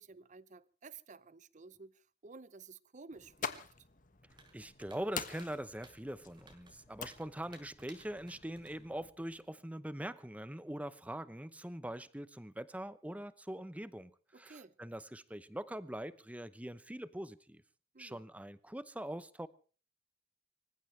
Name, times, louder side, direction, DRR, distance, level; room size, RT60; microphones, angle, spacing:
voice 1, 0.0-3.6 14.3-14.7 17.9-18.2, right 4 dB, 40° right, 0.7 m, -54 dB
sound 1, 3.1-9.1, left 6 dB, 45° left, 1.4 m, -47 dB
sound 2, 4.3-9.5, right 2 dB, 25° right, 4.2 m, -62 dB
voice 2, 4.5-17.6 18.0-19.5, right 1 dB, 10° right, 0.8 m, -43 dB
25.5 x 15.5 x 3.3 m
head